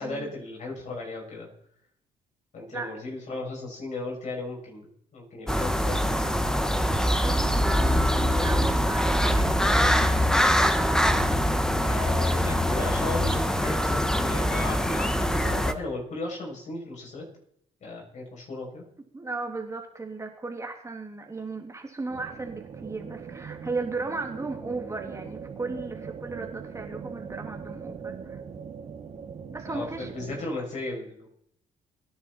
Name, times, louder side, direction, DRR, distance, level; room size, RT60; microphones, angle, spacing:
voice 1, 0.0-1.5 2.5-6.7 11.8-17.2 17.8-18.9 29.7-31.3, left 2 dB, 55° left, -2 dB, 7.3 m, -36 dB
sound 1, 5.5-15.7, equal, 5° left, 1.2 m, -23 dB
voice 2, 7.2-9.6 19.1-28.4 29.5-30.1, right 3 dB, 20° right, 3 dB, 2.5 m, -36 dB
sound 2, 22.1-30.4, right 6 dB, 50° right, 2.3 m, -40 dB
22.0 x 10.5 x 4.4 m, 0.72 s
cardioid pair, 80°, 14 cm